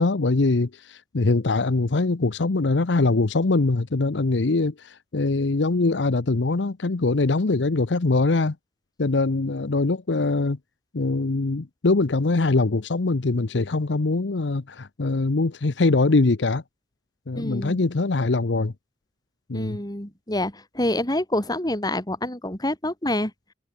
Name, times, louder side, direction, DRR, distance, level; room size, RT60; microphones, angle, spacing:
voice 1, 0.0-8.6 9.0-10.6 10.9-16.6 17.3-18.7 19.5-19.8, left 3 dB, 80° left, 0.8 m, -22 dB
voice 2, 17.4-17.8 19.5-23.3, left 1 dB, 20° left, 4.1 m, -27 dB
head